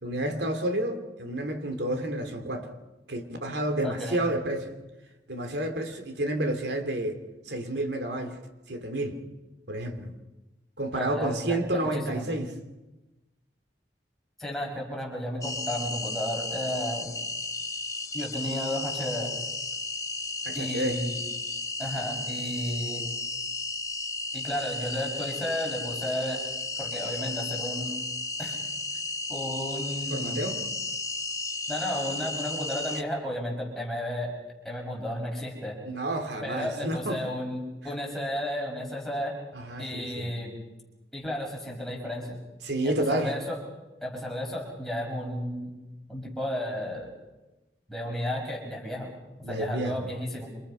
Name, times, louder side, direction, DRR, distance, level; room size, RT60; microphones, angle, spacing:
voice 1, 0.0-2.7 3.1-4.7 5.3-7.2 7.5-8.4 8.7-9.2 9.7-10.1 10.8-12.5 20.4-21.0 30.1-30.6 35.8-37.2 39.5-40.3 42.6-43.3 49.4-50.1, right 1 dB, 70° right, 5 dB, 3.0 m, -30 dB
voice 2, 3.8-4.2 10.9-12.2 14.4-17.1 18.1-19.4 20.5-21.2 21.8-23.0 24.3-26.4 26.8-27.9 28.4-28.6 29.3-30.5 31.7-34.3 34.6-35.7 36.4-39.3 39.8-40.5 41.1-42.4 42.8-43.6 44.0-45.7 46.1-47.1 47.9-49.1 49.5-50.5, left 1 dB, ahead, -3 dB, 6.1 m, -33 dB
sound 1, 15.4-33.0, left 3 dB, 20° left, 1.0 m, -34 dB
28.0 x 27.0 x 5.7 m, 1.1 s
head